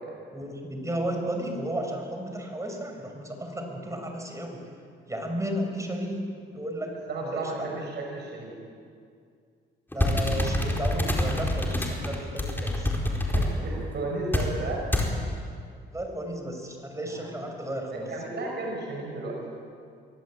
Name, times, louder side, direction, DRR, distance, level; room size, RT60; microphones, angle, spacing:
voice 1, 0.3-4.6 5.1-6.9 7.2-7.8 9.9-12.9 15.9-18.1, right 1 dB, 15° right, 3 dB, 5.9 m, -33 dB
voice 2, 7.1-8.6 13.2-14.9 17.1-17.3 17.9-19.4, right 2 dB, 60° right, 0 dB, 6.2 m, -34 dB
sound 1, 9.9-13.5 14.3-14.5 14.9-15.1, left 1 dB, 10° left, 4.5 m, -26 dB
24.5 x 17.5 x 8.9 m, 2.3 s
cardioid pair, 90°, 20 cm